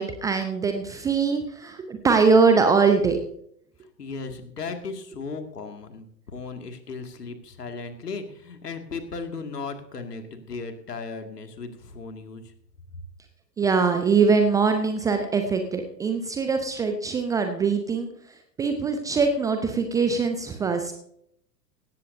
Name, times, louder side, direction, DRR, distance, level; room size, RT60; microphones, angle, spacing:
voice 1, 0.0-3.2 13.6-18.1 18.6-20.9, right 5 dB, 5° right, 6 dB, 0.6 m, -22 dB
voice 2, 3.8-12.5, left 4 dB, 70° left, 6 dB, 2.3 m, -36 dB
17.5 x 15.0 x 2.7 m, 0.67 s
figure-of-eight pair, 105°, 49 cm